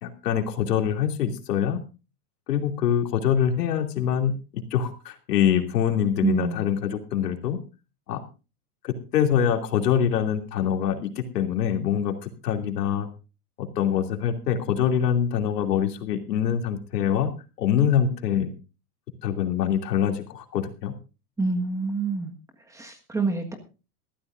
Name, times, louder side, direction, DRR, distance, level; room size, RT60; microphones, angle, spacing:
voice 1, 0.0-1.8 2.5-7.6 8.1-8.2 8.8-13.1 13.6-17.3 17.6-18.5 19.2-20.9, left 9 dB, 85° left, 5 dB, 2.9 m, -24 dB
voice 2, 6.2-6.7 21.4-22.3 22.7-23.5, right 3 dB, 5° right, 4 dB, 1.5 m, -26 dB
20.5 x 14.0 x 2.6 m, 0.32 s
supercardioid pair, 160°, 47 cm